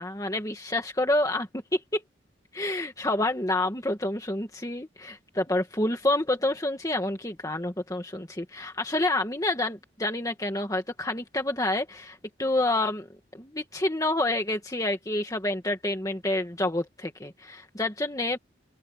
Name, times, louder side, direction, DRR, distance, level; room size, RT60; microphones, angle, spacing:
voice 1, 0.0-2.0 2.5-13.1 13.3-18.4, left 1 dB, 15° left, 1.9 m, -28 dB
open air
head